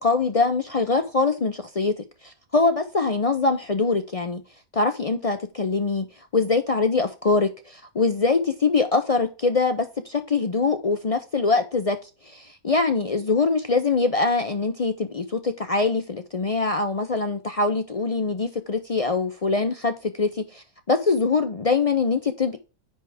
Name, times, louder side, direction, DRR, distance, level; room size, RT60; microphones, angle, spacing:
voice 1, 0.0-4.4 4.7-6.1 6.3-12.0 12.2-22.6, left 4 dB, 60° left, 0.3 m, -23 dB
9.7 x 3.4 x 4.8 m
omnidirectional pair, 1.5 m